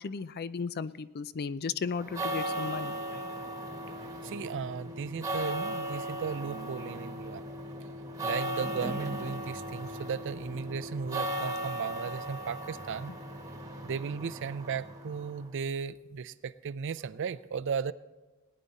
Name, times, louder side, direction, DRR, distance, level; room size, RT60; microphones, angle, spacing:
voice 1, 0.0-3.3, left 5 dB, 45° left, 16 dB, 0.4 m, -35 dB
sound 1, 1.9-15.5, right 1 dB, 15° right, 1.4 m, -37 dB
voice 2, 4.0-7.4 8.2-13.1 13.8-17.9, right 6 dB, 55° right, 17 dB, 0.4 m, -36 dB
18.0 x 10.0 x 4.1 m, 1.2 s
head